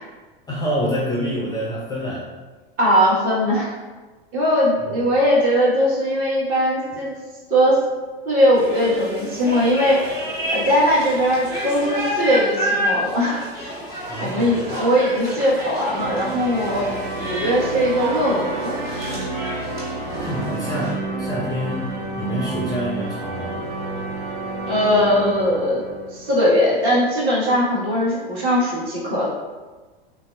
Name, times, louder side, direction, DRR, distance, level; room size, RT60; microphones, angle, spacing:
voice 1, 0.5-2.3 4.8-5.0 14.1-14.8 20.2-23.6, equal, 15° left, -4 dB, 0.3 m, -27 dB
voice 2, 2.8-3.7 4.3-7.1 7.5-7.8 8.2-10.0 10.5-13.4 14.2-16.8 17.2-18.8 24.7-25.8 26.1-29.3, equal, 45° right, -5 dB, 1.2 m, -19 dB
sound 1, 8.5-20.9, equal, 10° right, 1.3 m, -29 dB
sound 2, 15.9-26.9, right 2 dB, 75° right, 0.7 m, -30 dB
3.2 x 2.6 x 2.3 m, 1.3 s
hypercardioid pair, 100°, 31 cm